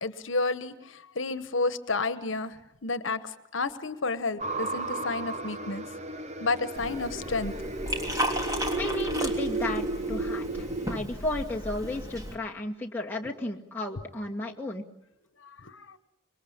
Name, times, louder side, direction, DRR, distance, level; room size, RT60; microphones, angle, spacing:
voice 1, 0.0-5.8 6.4-7.5 13.2-13.3 15.4-16.0, left 3 dB, 75° left, 13 dB, 1.3 m, -31 dB
sound 1, 4.4-11.0, right 2 dB, 35° right, 1.1 m, -33 dB
Liquid, 6.8-12.4, equal, 20° right, 3.2 m, -35 dB
voice 2, 8.8-14.8, left 2 dB, 10° left, -2 dB, 2.2 m, -34 dB
25.5 x 22.0 x 8.7 m, 0.78 s
head